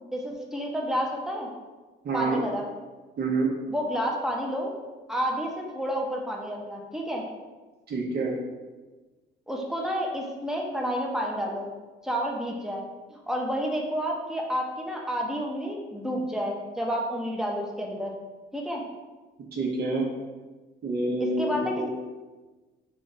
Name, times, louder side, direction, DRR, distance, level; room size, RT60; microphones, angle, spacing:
voice 1, 0.1-1.5 2.1-2.7 3.7-4.7 5.1-7.2 9.5-11.7 12.0-12.8 13.1-18.1 18.5-18.8 21.2-21.9, equal, ahead, -1 dB, 0.8 m, -30 dB
voice 2, 2.0-2.4 3.2-3.5 7.9-8.3 19.5-20.1 20.8-21.9, right 3 dB, 55° right, -2 dB, 1.0 m, -27 dB
4.9 x 2.6 x 3.3 m, 1.2 s
cardioid pair, 90°, 20 cm